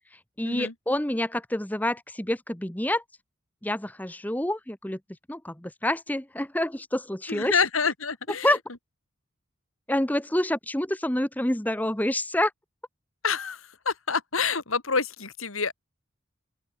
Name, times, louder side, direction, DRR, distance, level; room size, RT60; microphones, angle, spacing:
voice 1, 0.4-3.0 3.6-5.0 5.3-7.6 8.4-8.6 9.9-12.5, left 1 dB, 10° left, 1.0 m, -27 dB
voice 2, 7.3-8.6 13.2-15.7, left 5 dB, 80° left, 2.9 m, -27 dB
open air
head